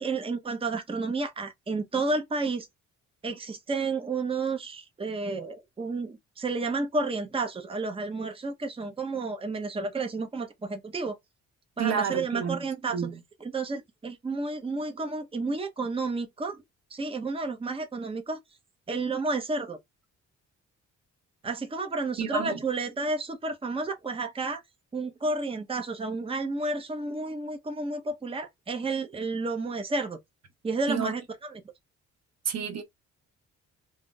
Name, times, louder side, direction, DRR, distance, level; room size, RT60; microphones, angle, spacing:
voice 1, 0.0-2.7 3.2-11.2 11.8-13.1 13.4-16.6 16.9-18.4 18.9-19.8 21.4-24.6 24.9-30.2 30.6-31.6, right 3 dB, 20° right, 0.7 m, -31 dB
voice 2, 11.8-12.7 12.9-13.2 22.2-22.6 30.9-31.1 32.4-32.8, right 6 dB, 60° right, 0.9 m, -30 dB
2.4 x 2.1 x 3.7 m
cardioid pair, 90°, 30 cm